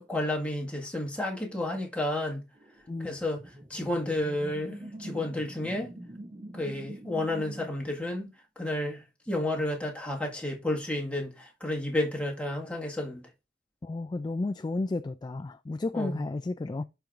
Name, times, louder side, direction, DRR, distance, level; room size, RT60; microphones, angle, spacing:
voice 1, 0.0-2.4 3.0-3.4 3.7-5.9 6.5-13.3 15.9-16.2, left 1 dB, 5° left, 1.7 m, -31 dB
sound 1, 2.6-7.7, right 1 dB, 50° right, 2.2 m, -44 dB
voice 2, 13.8-16.8, left 2 dB, 25° left, 0.3 m, -32 dB
11.5 x 4.6 x 2.5 m
head